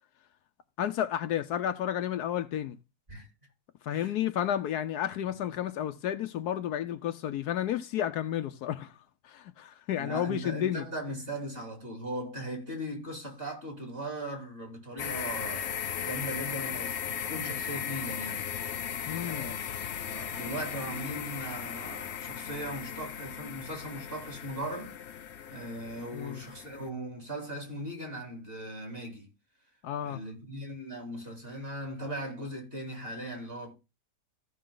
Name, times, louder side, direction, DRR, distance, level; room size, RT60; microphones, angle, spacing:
voice 1, 0.8-2.8 3.8-8.9 9.2-10.8 19.1-19.5 26.1-26.4 29.8-30.2, left 10 dB, 75° left, 1.2 m, -31 dB
voice 2, 10.0-18.4 19.2-25.0 25.5-29.3 30.0-33.7, right 1 dB, 35° right, 3.5 m, -39 dB
sound 1, 15.0-26.9, left 8 dB, 55° left, 0.8 m, -37 dB
15.0 x 5.7 x 3.8 m
omnidirectional pair, 1.8 m